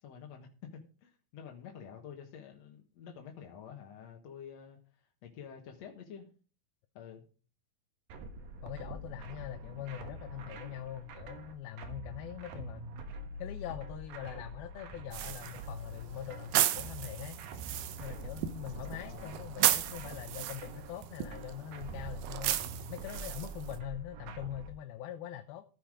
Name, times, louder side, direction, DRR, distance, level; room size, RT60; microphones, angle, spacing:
voice 1, 0.0-6.3 6.9-7.3 18.9-19.4, left 7 dB, 55° left, 1 dB, 2.2 m, -49 dB
sound 1, 8.1-24.7, right 2 dB, 70° right, 3.1 m, -45 dB
voice 2, 8.6-12.9 13.4-17.4 18.0-22.6 22.9-25.6, left 11 dB, 80° left, 7 dB, 2.6 m, -43 dB
sound 2, 15.1-23.8, right 13 dB, 90° right, 2.9 m, -35 dB
14.5 x 8.1 x 5.0 m, 0.38 s
omnidirectional pair, 4.4 m